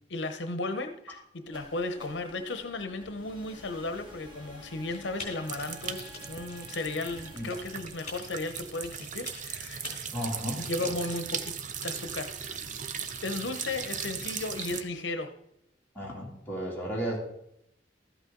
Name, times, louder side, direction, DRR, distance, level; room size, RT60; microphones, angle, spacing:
voice 1, 0.1-1.2 1.5-9.8 10.6-11.5 11.8-12.7 13.2-15.3, left 2 dB, 75° left, 8 dB, 0.8 m, -35 dB
sound 1, 1.4-9.4, equal, 30° right, 2.4 m, -51 dB
Typing, 4.9-11.2, left 3 dB, 40° left, 3.5 m, -47 dB
sound 2, 5.4-14.8, right 7 dB, 45° right, 0.6 m, -38 dB
voice 2, 10.1-10.6 15.9-17.2, equal, 10° left, -5 dB, 2.7 m, -33 dB
13.0 x 8.1 x 3.8 m, 0.78 s
head